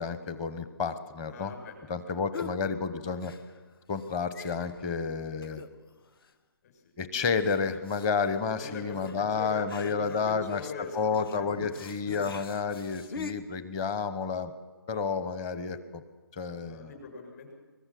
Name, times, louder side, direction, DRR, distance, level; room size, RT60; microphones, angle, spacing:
voice 1, 0.0-1.5 1.9-3.3 3.9-5.6 7.0-14.5 14.9-16.0 16.3-16.9, left 5 dB, 20° left, 12 dB, 1.0 m, -31 dB
voice 2, 1.3-1.7 2.1-2.4 6.6-7.3 8.5-11.8 16.6-17.5, left 4 dB, 40° left, 4 dB, 6.9 m, -42 dB
sound 1, 2.3-2.6 3.2-3.7 4.0-4.1 4.3-4.9 5.4-5.9 6.2-6.3 7.2-13.3, left 6 dB, 70° left, 2.0 m, -44 dB
23.0 x 20.5 x 7.7 m, 1.3 s
hypercardioid pair, 165°, 13 cm